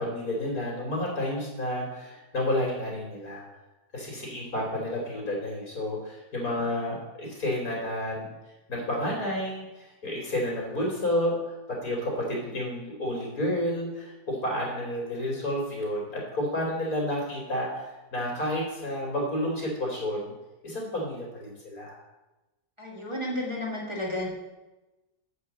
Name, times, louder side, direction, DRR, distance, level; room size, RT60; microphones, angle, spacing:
voice 1, 0.0-3.5 3.9-8.3 8.7-11.6 11.8-17.8 18.1-20.3 20.6-22.0, left 1 dB, 60° left, -2 dB, 3.9 m, -30 dB
voice 2, 22.8-24.3, left 1 dB, 15° right, -4 dB, 2.0 m, -32 dB
7.6 x 6.5 x 7.2 m, 1.1 s
omnidirectional pair, 1.7 m